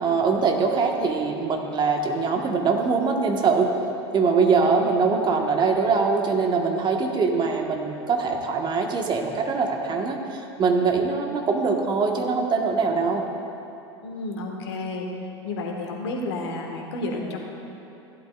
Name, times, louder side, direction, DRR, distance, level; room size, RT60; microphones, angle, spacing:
voice 1, 0.0-3.7 4.1-13.2, right 4 dB, 30° right, 2 dB, 1.5 m, -23 dB
voice 2, 4.6-5.2 14.0-15.1 15.4-17.4, left 2 dB, 70° left, 1 dB, 1.6 m, -31 dB
16.0 x 11.5 x 2.5 m, 2.9 s
hypercardioid pair, 80°, 14 cm